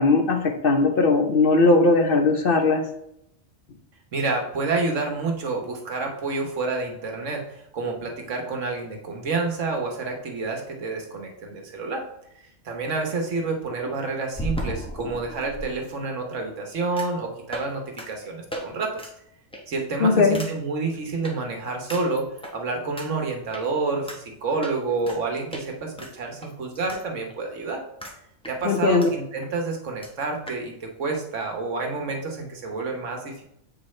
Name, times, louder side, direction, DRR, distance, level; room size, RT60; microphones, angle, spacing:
voice 1, 0.0-2.8 20.0-20.4 28.6-29.1, left 3 dB, 55° left, 5 dB, 0.8 m, -19 dB
voice 2, 4.1-12.0 12.6-19.0 19.7-22.2 22.5-27.8 28.5-33.4, right 3 dB, 85° right, 2 dB, 1.5 m, -29 dB
sound 1, 14.3-15.6 17.0-17.2 17.5-17.7 18.0-18.1 18.5-18.6 19.0-19.1 19.5-19.8 20.3-20.5 21.2-21.3 21.9-22.5 23.0-23.1 23.5-23.6 24.1-24.2 24.6-25.2 25.5-25.7 26.0-27.0 27.3-27.4 28.0-28.2 28.4-29.1 29.4-29.5 29.7-29.8 30.0-30.1 30.5-30.6, equal, 5° left, 0.9 m, -35 dB
7.7 x 4.7 x 3.2 m, 0.77 s
omnidirectional pair, 1.2 m